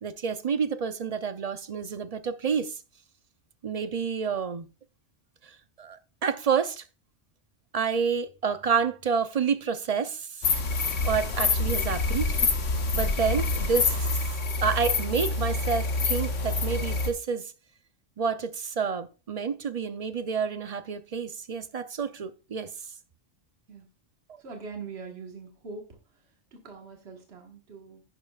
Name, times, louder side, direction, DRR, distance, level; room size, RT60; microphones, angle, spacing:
voice 1, 0.0-2.8 3.6-4.7 5.8-6.8 7.7-10.3 11.0-12.3 12.9-14.1 14.6-17.5 18.2-22.7, right 6 dB, 45° right, 0.5 m, -29 dB
sound 1, 10.4-17.1, left 3 dB, 85° left, 1.5 m, -26 dB
voice 2, 24.4-26.0 26.5-28.0, right 4 dB, 60° right, 1.8 m, -42 dB
10.5 x 9.9 x 2.4 m
omnidirectional pair, 1.2 m